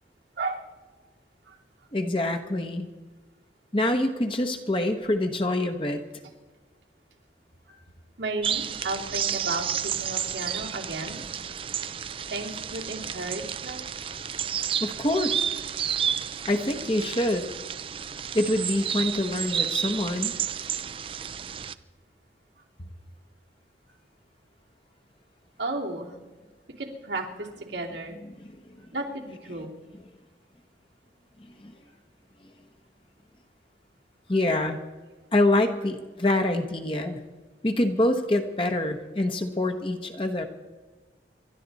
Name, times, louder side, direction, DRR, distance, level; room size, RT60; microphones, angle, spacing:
voice 1, 1.9-2.9 3.7-6.0 14.8-15.5 16.5-17.5 18.3-20.3 31.6-31.7 34.3-34.8 35.3-37.2 37.6-40.4, left 1 dB, 30° left, 5 dB, 1.0 m, -25 dB
voice 2, 8.2-11.2 12.3-13.8 15.8-15.9 25.6-26.1 26.8-28.1 28.9-29.7, right 2 dB, 90° right, -1 dB, 2.9 m, -33 dB
sound 1, 8.4-21.7, right 8 dB, 30° right, 0.4 m, -31 dB
27.5 x 12.0 x 4.1 m, 1.3 s
head